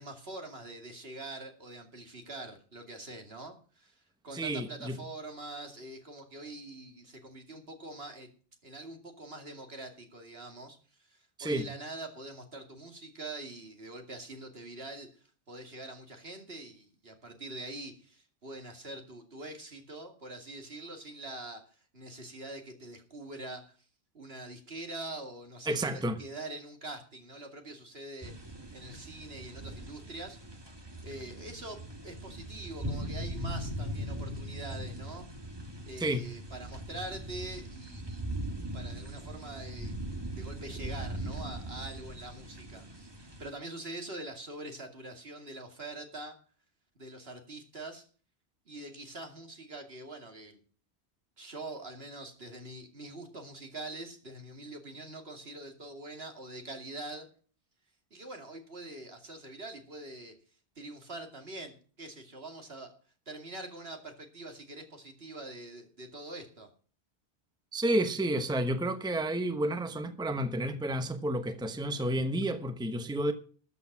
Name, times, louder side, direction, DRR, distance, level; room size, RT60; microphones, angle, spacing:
voice 1, 0.0-8.3 8.6-15.1 15.5-21.6 21.9-23.8 24.1-28.3 28.7-30.6 31.0-35.2 35.9-38.2 38.7-40.0 40.4-46.4 47.0-48.1 48.7-50.6 51.4-57.3 58.1-60.3 60.8-62.9 63.3-66.7, right 2 dB, 65° right, 2.6 m, -44 dB
voice 2, 4.3-5.0 11.4-11.7 25.7-26.2 36.0-36.3 67.7-73.3, right 1 dB, 5° right, 1.0 m, -31 dB
sound 1, 28.2-43.5, right 1 dB, 25° right, 1.6 m, -40 dB
13.5 x 8.2 x 5.9 m
omnidirectional pair, 1.1 m